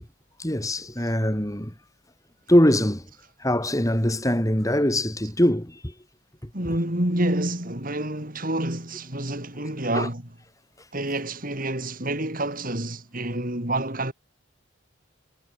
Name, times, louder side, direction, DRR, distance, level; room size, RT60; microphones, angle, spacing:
voice 1, 0.4-1.7 2.5-3.1 3.4-5.9 9.9-10.1, equal, 15° left, 3.7 m, -22 dB
voice 2, 6.5-10.2 10.9-14.1, right 1 dB, 45° right, 4.9 m, -28 dB
head